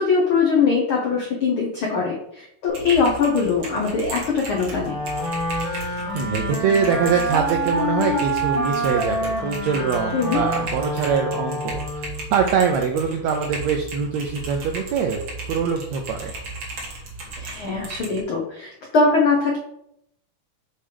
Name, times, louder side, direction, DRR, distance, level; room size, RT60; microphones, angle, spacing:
voice 1, 0.0-5.0 10.1-10.4 17.4-19.6, left 4 dB, 75° left, -1 dB, 1.2 m, -21 dB
Typing, 2.7-18.2, right 3 dB, 45° right, 2.0 m, -35 dB
Wind instrument woodwind instrument, 4.8-12.3, equal, 35° left, 1.5 m, -27 dB
voice 2, 5.5-11.8 12.3-15.2 15.5-16.3, right 6 dB, 80° right, 3 dB, 1.5 m, -23 dB
7.1 x 3.3 x 5.1 m, 0.76 s
omnidirectional pair, 3.8 m